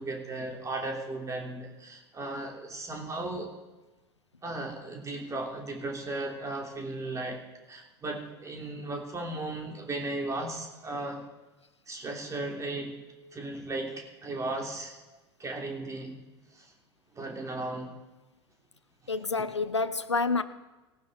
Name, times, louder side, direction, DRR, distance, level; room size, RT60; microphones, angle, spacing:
voice 1, 0.0-3.5 4.4-11.3 11.9-13.0 13.3-15.0 15.4-16.2 16.5-16.7 17.1-17.9, right 2 dB, 20° right, 3.0 m, -36 dB
voice 2, 19.1-20.4, left 4 dB, 85° left, 0.7 m, -28 dB
18.5 x 10.0 x 4.2 m
figure-of-eight pair, 80°, 14 cm